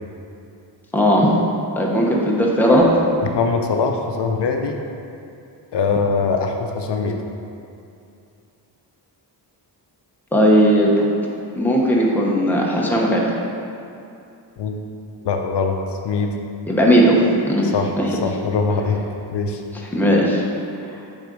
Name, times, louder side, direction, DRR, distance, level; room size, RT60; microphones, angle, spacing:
voice 1, 0.9-1.3 1.8-2.9 10.3-11.1 11.6-13.3 16.7-18.2 19.9-20.4, equal, 5° left, -3 dB, 0.8 m, -17 dB
voice 2, 3.2-4.8 5.7-7.2 14.6-14.8 15.2-15.8 16.0-16.4 17.6-19.0 19.3-19.6, left 4 dB, 70° left, 3 dB, 0.6 m, -22 dB
7.9 x 3.9 x 5.2 m, 2.6 s
wide cardioid pair, 170°, 43 cm